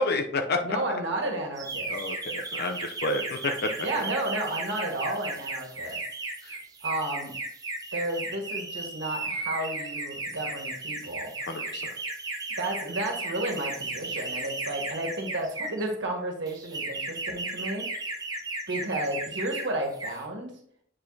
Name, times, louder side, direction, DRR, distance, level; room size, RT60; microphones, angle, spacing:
voice 1, 0.0-0.6 1.9-3.4 11.5-11.9, left 2 dB, 55° left, 5 dB, 0.6 m, -29 dB
voice 2, 0.6-1.9 3.8-6.0 6.8-7.3 7.9-11.3 12.6-17.9 18.7-20.5, right 1 dB, 65° right, 1 dB, 1.6 m, -32 dB
sound 1, 1.6-15.9 16.5-19.7 19.9-20.2, right 2 dB, 20° right, 0.8 m, -35 dB
8.3 x 4.8 x 2.7 m, 0.62 s
head